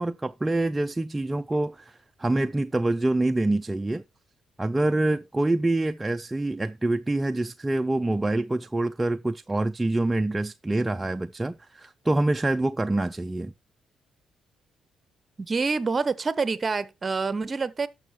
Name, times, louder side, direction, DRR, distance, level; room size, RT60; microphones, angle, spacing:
voice 1, 0.0-4.0 4.6-13.5, right 2 dB, 15° right, 0.4 m, -26 dB
voice 2, 15.4-17.9, right 4 dB, 30° right, 0.8 m, -27 dB
12.0 x 6.2 x 3.1 m
cardioid pair, 90°, 0 cm